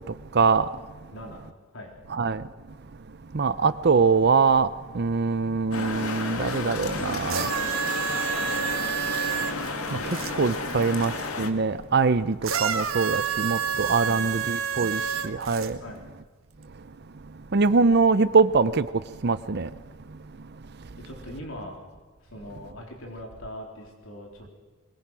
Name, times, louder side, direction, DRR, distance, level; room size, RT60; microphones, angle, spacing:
voice 1, 0.3-0.7 2.1-2.4 3.3-4.7 4.9-7.5 9.9-10.0 10.3-11.1 11.4-15.8 17.5-18.9 19.2-19.7, right 4 dB, 50° right, 0.6 m, -23 dB
voice 2, 1.1-1.4 1.7-1.9 14.0-14.5 15.8-16.0 21.0-21.8 22.2-24.5, left 1 dB, 65° left, 3.9 m, -41 dB
sound 1, 5.7-11.5, left 3 dB, 85° left, 2.1 m, -32 dB
sound 2, 7.3-10.3 12.4-15.7 16.6-16.7, right 8 dB, 75° right, 1.8 m, -29 dB
23.5 x 21.5 x 6.3 m
head